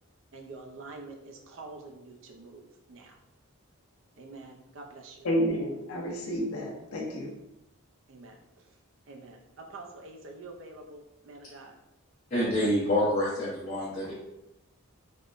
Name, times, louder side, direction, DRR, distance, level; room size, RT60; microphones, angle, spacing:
voice 1, 0.3-3.2 4.2-5.3 8.1-8.8 9.1-11.7, right 3 dB, 60° right, 2 dB, 0.4 m, -47 dB
voice 2, 5.2-7.3, equal, 75° left, -1 dB, 0.6 m, -30 dB
voice 3, 12.3-14.1, left 1 dB, 35° left, -12 dB, 0.7 m, -27 dB
3.5 x 2.1 x 2.4 m, 0.90 s
head